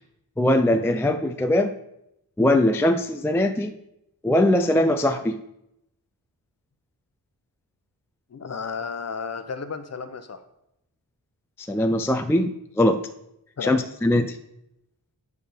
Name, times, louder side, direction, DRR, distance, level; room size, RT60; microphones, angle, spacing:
voice 1, 0.4-1.7 2.4-3.7 4.2-5.4 11.6-12.5 12.8-13.0 13.6-14.4, left 1 dB, 5° left, 8 dB, 0.3 m, -21 dB
voice 2, 8.3-10.4 13.6-13.8, left 5 dB, 40° left, 9 dB, 0.8 m, -33 dB
10.0 x 3.5 x 6.6 m, 0.82 s
wide cardioid pair, 130°, 40 cm